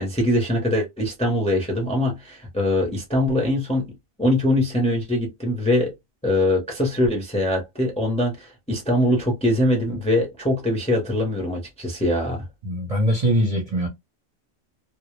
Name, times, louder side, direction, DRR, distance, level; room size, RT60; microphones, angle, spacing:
voice 1, 0.0-3.9 4.2-5.9 6.2-12.4, left 1 dB, 5° left, 0.5 m, -22 dB
voice 2, 12.6-13.9, equal, 40° right, 0.6 m, -22 dB
2.1 x 2.0 x 2.9 m
omnidirectional pair, 1.2 m